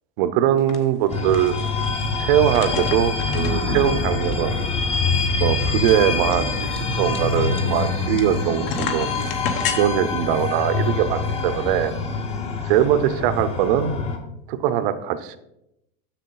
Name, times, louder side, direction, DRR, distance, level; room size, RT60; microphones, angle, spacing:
voice 1, 0.2-1.5 2.2-4.6 5.4-9.1 9.7-11.9 12.7-13.9 14.5-15.4, right 10 dB, 60° right, 12 dB, 0.7 m, -21 dB
sound 1, 0.6-0.8 1.1-2.0 2.5-3.9 4.3-4.4 4.6-4.7 5.2-8.4 8.7-9.8, left 6 dB, 60° left, 1.0 m, -31 dB
sound 2, 1.1-14.2, left 4 dB, 20° left, 0.7 m, -25 dB
7.2 x 6.7 x 3.8 m, 0.84 s
supercardioid pair, 170°, 31 cm